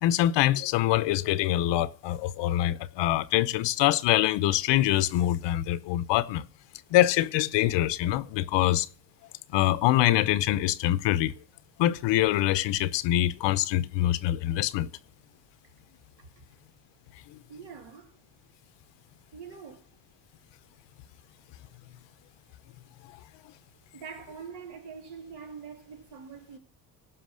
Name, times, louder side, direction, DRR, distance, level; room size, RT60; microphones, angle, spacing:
voice 1, 0.0-6.4 6.9-8.9 9.5-11.3 11.8-14.9 17.3-17.4, left 14 dB, 90° left, 0.8 m, -24 dB
voice 2, 16.2-16.6 17.5-18.2 19.3-19.9 22.4-22.5 23.5-23.6 23.9-26.6, right 6 dB, 70° right, 3.4 m, -44 dB
16.0 x 5.9 x 6.4 m
cardioid pair, 120°, 42 cm